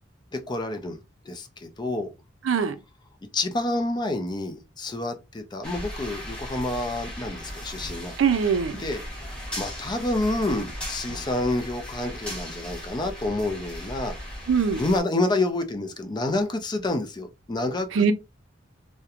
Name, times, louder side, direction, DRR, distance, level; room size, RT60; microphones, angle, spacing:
voice 1, 0.3-1.0 1.2-2.1 3.3-8.2 8.8-9.0 9.3-14.2 14.8-18.1, left 2 dB, 25° left, 0.4 m, -28 dB
voice 2, 2.4-2.8 8.2-8.8 14.5-14.8 17.9-18.1, right 6 dB, 80° right, 0.4 m, -22 dB
sound 1, 5.6-15.0, equal, 5° left, 1.0 m, -37 dB
2.8 x 2.1 x 2.4 m
head